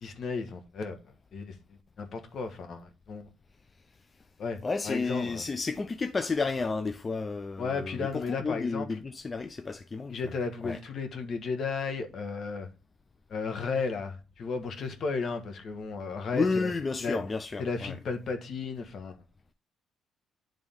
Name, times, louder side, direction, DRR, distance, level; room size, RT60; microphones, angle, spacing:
voice 1, 0.0-1.0 1.3-1.5 2.0-3.3 4.4-5.4 7.6-8.9 10.1-12.7 13.3-16.7 17.0-17.2 17.6-19.2, left 4 dB, 55° left, 1.4 m, -34 dB
voice 2, 4.6-10.2 10.6-10.8 16.3-18.0, left 4 dB, 30° left, 0.5 m, -31 dB
9.3 x 3.7 x 3.6 m
cardioid pair, 85°, 0 cm